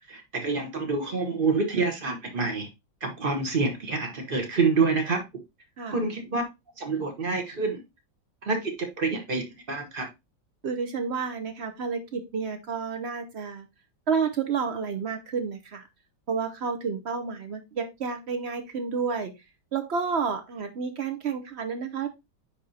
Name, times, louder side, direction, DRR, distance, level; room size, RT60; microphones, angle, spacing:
voice 1, 0.1-2.7 3.0-5.2 5.9-6.4 6.8-7.8 8.4-10.1, right 4 dB, 35° right, 4 dB, 1.2 m, -27 dB
voice 2, 10.6-13.7 14.1-15.8 16.3-19.3 19.7-22.1, right 5 dB, 55° right, 7 dB, 0.7 m, -30 dB
9.8 x 3.6 x 2.7 m, 0.22 s
omnidirectional pair, 2.0 m